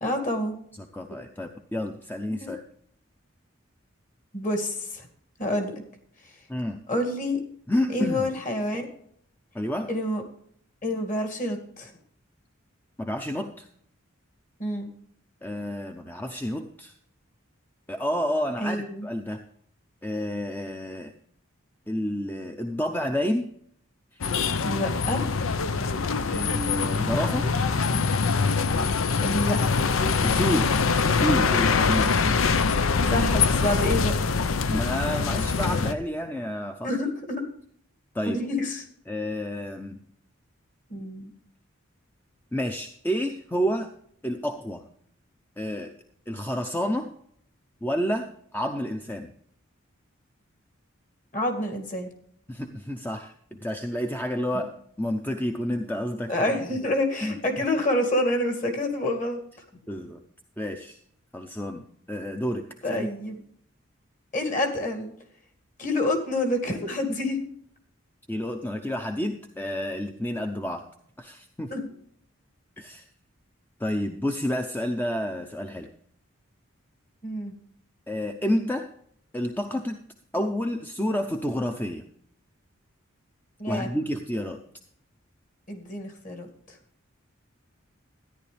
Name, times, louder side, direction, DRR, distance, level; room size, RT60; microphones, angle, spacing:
voice 1, 0.0-0.5 2.4-2.5 4.3-5.1 5.4-5.7 6.9-7.4 7.9-8.9 9.9-10.2 10.8-11.9 14.6-14.9 18.6-19.1 24.6-25.2 29.2-29.6 33.0-34.3 34.7-34.8 36.8-37.4 38.3-38.8 40.9-41.3 51.3-52.1 54.5-54.6 56.3-59.4 62.8-63.4 64.3-65.1 65.8-67.4 71.7-71.9 77.2-77.5 83.6-83.9 85.7-86.5, left 1 dB, 40° left, 4 dB, 2.2 m, -28 dB
voice 2, 0.8-2.6 6.5-6.8 7.7-8.3 9.5-9.9 13.0-13.7 15.4-16.9 17.9-19.4 20.0-21.1 21.9-23.5 24.1-24.2 26.3-27.5 30.2-32.2 34.7-36.9 38.1-38.4 39.1-40.0 42.5-43.9 44.2-44.8 45.6-45.9 46.3-47.1 47.8-49.3 52.5-53.3 53.6-56.9 57.2-57.4 59.9-60.2 60.6-61.0 61.3-63.1 68.3-70.9 71.2-71.7 72.8-73.0 73.8-75.9 78.1-78.9 79.3-80.0 80.3-82.0 83.7-84.6, equal, 10° left, 5 dB, 0.6 m, -30 dB
sound 1, 24.2-35.9, left 4 dB, 85° left, 0.7 m, -24 dB
13.5 x 10.5 x 3.4 m, 0.65 s
head